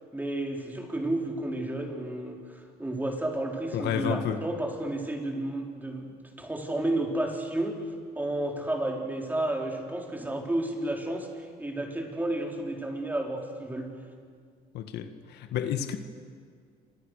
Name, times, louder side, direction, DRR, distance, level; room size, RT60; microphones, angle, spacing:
voice 1, 0.1-6.1 6.4-7.8 8.1-13.9, right 1 dB, 10° right, 1 dB, 4.4 m, -31 dB
voice 2, 3.7-4.4 14.7-16.0, left 9 dB, 75° left, 8 dB, 1.8 m, -30 dB
28.5 x 26.0 x 6.7 m, 2.1 s
cardioid pair, 110°, 17 cm